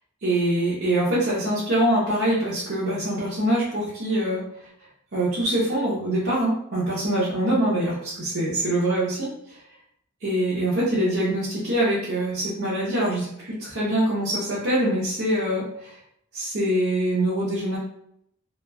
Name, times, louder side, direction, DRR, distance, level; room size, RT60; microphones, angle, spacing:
voice 1, 0.2-4.4 5.1-9.6 10.2-16.0 16.3-17.8, right 1 dB, 50° right, -8 dB, 0.7 m, -24 dB
2.9 x 2.3 x 2.2 m, 0.72 s
head